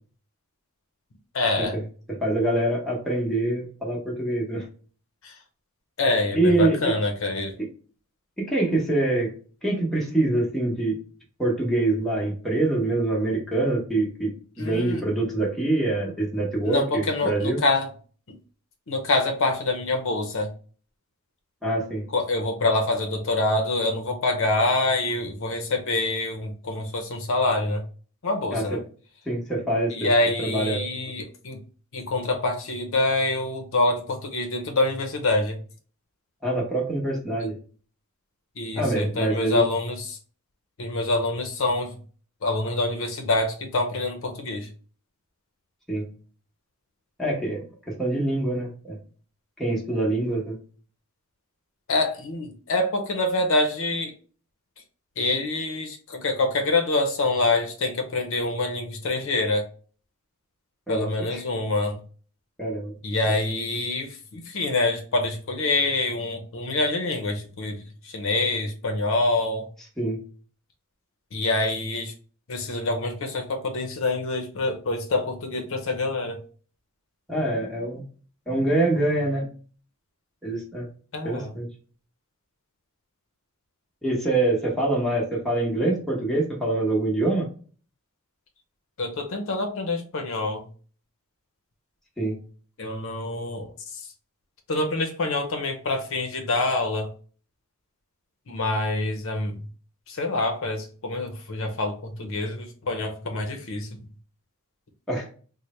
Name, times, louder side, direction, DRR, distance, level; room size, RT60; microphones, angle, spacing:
voice 1, 1.3-1.8 5.2-5.3 6.0-7.5 14.6-15.0 16.6-17.9 18.3-18.4 18.9-20.5 22.1-27.8 28.2-28.8 29.9-31.6 31.9-35.6 37.4-37.5 38.6-40.2 40.8-42.0 42.4-44.7 51.9-54.1 55.2-59.7 60.9-62.0 63.0-69.7 71.3-72.1 72.5-76.4 81.1-81.5 89.0-90.7 92.8-94.1 94.7-97.1 98.5-99.6 100.1-104.0, left 2 dB, 65° left, 4 dB, 0.6 m, -26 dB
voice 2, 2.1-4.7 6.3-6.9 8.4-9.3 9.6-11.0 11.4-17.6 21.6-22.1 28.5-28.8 29.3-30.1 30.4-30.9 36.4-37.6 38.7-39.6 45.9-46.0 47.2-49.0 49.6-50.6 60.9-61.4 62.6-62.9 63.2-63.3 70.0-70.2 77.3-78.0 78.5-79.5 80.4-80.9 81.2-81.7 84.0-87.5 92.2-92.4 105.1-105.3, right 2 dB, ahead, -3 dB, 0.9 m, -25 dB
3.2 x 2.1 x 4.1 m, 0.41 s
head